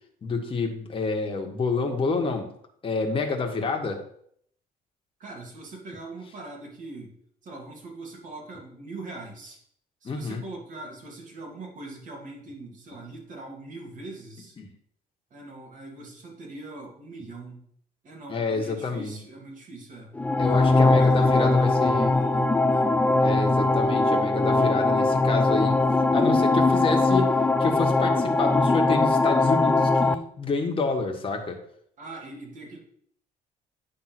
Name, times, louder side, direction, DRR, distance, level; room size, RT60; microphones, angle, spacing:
voice 1, 0.2-2.5 2.8-4.0 10.0-10.4 14.6-14.7 18.3-19.2 20.4-22.1 23.2-25.8 26.1-27.3 27.6-31.6, left 4 dB, 30° left, 2 dB, 1.5 m, -28 dB
voice 2, 5.2-7.1 7.4-9.6 10.0-14.6 15.3-17.6 18.0-20.1 20.4-23.0 32.0-32.8, right 2 dB, 50° right, -1 dB, 2.6 m, -41 dB
sound 1, 20.1-30.1, left 2 dB, 10° left, 0.4 m, -21 dB
9.2 x 3.6 x 5.9 m, 0.65 s
cardioid pair, 110°, 17 cm